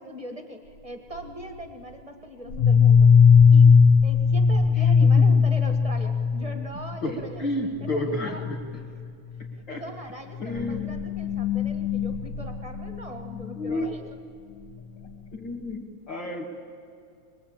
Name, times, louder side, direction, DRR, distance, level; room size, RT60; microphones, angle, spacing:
voice 1, 0.0-3.1 3.5-3.7 4.0-7.5 7.8-8.4 9.5-14.0, equal, 20° right, 5 dB, 0.9 m, -40 dB
sound 1, 1.1-1.6 2.5-7.0 7.3-7.5 7.7-8.1 8.3-8.6 9.3-9.4 10.4-13.5, left 6 dB, 75° left, 2.8 m, -19 dB
voice 2, 4.8-5.3 6.4-6.5 7.0-8.8 9.7-9.8 10.4-10.9 13.6-13.9 15.3-16.5, left 1 dB, 40° left, -1 dB, 2.5 m, -31 dB
24.5 x 21.0 x 8.8 m, 2.3 s
omnidirectional pair, 3.3 m